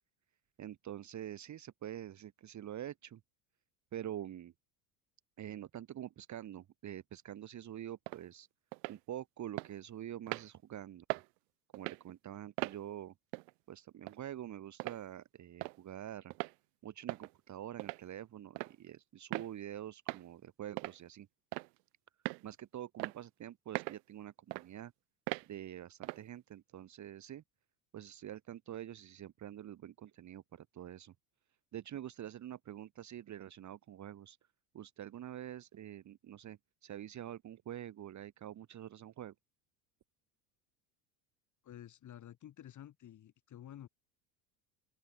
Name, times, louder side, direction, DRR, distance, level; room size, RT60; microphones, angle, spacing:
voice 1, 0.6-3.2 3.9-4.5 5.4-8.5 8.9-11.1 11.7-13.1 13.7-16.3 16.8-21.3 22.4-24.9 25.5-27.4 27.9-31.1 31.7-34.4 34.7-39.3, right 11 dB, 35° right, 1.8 m, -46 dB
sound 1, 8.1-8.2 8.7-9.0 9.6-9.7 10.3-10.5 11.1-11.3 11.7-12.0 12.6-12.8 13.3-13.5 14.1-14.2 14.8-15.0 15.6-15.8 16.3-16.5 17.1-17.3 17.8-18.0 18.6-18.8 19.3-19.5 20.1-20.2 20.8-21.0 21.5-21.8 22.3-22.4 23.0-23.2 23.7-24.0 24.5-24.7 25.3-25.5 26.0-26.2, right 28 dB, 80° right, 0.8 m, -39 dB
voice 2, 41.6-43.9, left 11 dB, 40° left, 2.0 m, -51 dB
open air
supercardioid pair, 110°, 48 cm